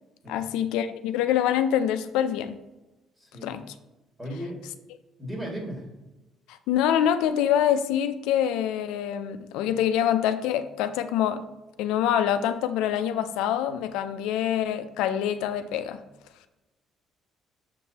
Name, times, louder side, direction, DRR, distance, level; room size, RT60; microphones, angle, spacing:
voice 1, 0.3-2.6 3.4-3.6 6.5-11.4 11.8-16.0, left 10 dB, 90° left, 10 dB, 0.4 m, -25 dB
voice 2, 3.2-3.5 4.2-4.6 5.2-5.9, equal, 15° right, 0 dB, 2.1 m, -36 dB
6.6 x 5.4 x 2.8 m, 1.0 s
cardioid pair, 90°, 0 cm